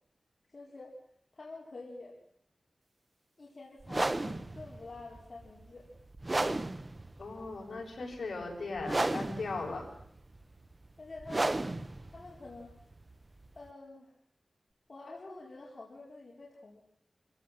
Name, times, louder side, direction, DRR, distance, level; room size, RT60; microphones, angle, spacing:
voice 1, 0.5-1.0 1.3-2.2 3.4-5.9 11.0-11.6 12.1-12.7 13.6-14.1 14.9-16.8, left 3 dB, 50° left, -3 dB, 4.4 m, -47 dB
sound 1, 3.8-13.7, right 2 dB, 30° right, 1.0 m, -35 dB
voice 2, 7.2-9.9, left 3 dB, 70° left, 0 dB, 7.7 m, -38 dB
26.0 x 17.0 x 7.7 m, 0.65 s
wide cardioid pair, 75°, 0 cm